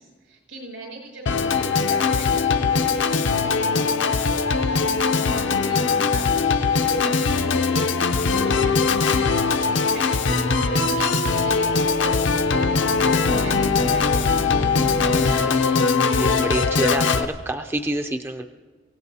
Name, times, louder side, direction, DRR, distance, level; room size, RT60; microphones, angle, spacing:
voice 1, 0.0-15.8, right 1 dB, 85° right, 0 dB, 5.6 m, -39 dB
Organ, 1.3-17.3, left 4 dB, 75° left, 0.6 m, -21 dB
voice 2, 16.1-18.5, right 1 dB, 10° right, 6 dB, 0.4 m, -27 dB
24.0 x 17.0 x 2.8 m, 1.5 s
head